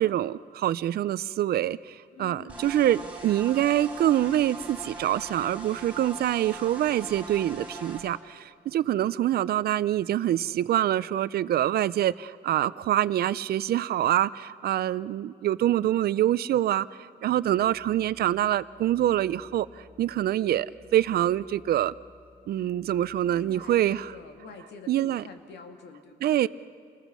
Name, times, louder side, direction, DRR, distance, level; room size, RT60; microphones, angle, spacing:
voice 1, 0.0-19.7 20.0-21.9 22.5-24.1 24.9-25.2 26.2-26.5, right 12 dB, 65° right, 17 dB, 0.5 m, -25 dB
voice 2, 2.1-2.9 23.2-26.5, left 4 dB, 80° left, 5 dB, 2.5 m, -47 dB
sound 1, 2.5-8.0, right 2 dB, 10° right, 4.2 m, -41 dB
Musical instrument, 17.5-24.2, left 3 dB, 10° left, 1.9 m, -55 dB
28.0 x 20.5 x 6.2 m, 2.4 s
wide cardioid pair, 175°, 17 cm